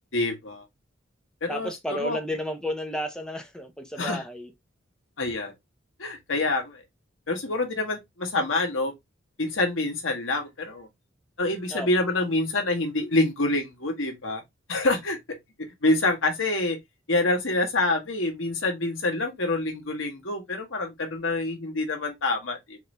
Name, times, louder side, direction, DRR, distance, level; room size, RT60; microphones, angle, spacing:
voice 1, 0.1-0.6 1.4-2.2 4.0-4.2 5.2-5.5 6.0-6.8 7.3-8.9 9.4-10.9 11.4-14.4 14.7-15.2 15.8-16.8 17.1-22.8, left 2 dB, 90° left, 1.4 m, -26 dB
voice 2, 1.5-4.5 11.7-11.9, equal, 5° left, 0.6 m, -32 dB
4.2 x 2.7 x 3.2 m
head